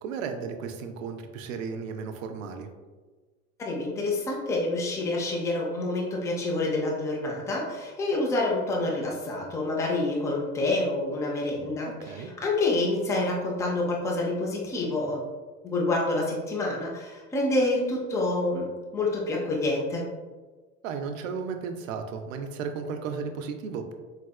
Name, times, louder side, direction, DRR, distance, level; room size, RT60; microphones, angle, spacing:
voice 1, 0.0-2.7 11.8-12.3 20.8-23.9, right 5 dB, 65° right, 6 dB, 0.5 m, -34 dB
voice 2, 3.6-15.2 15.6-18.7 18.9-20.1, left 2 dB, 10° left, -2 dB, 0.3 m, -27 dB
3.9 x 2.5 x 2.2 m, 1.3 s
figure-of-eight pair, 75°, 44 cm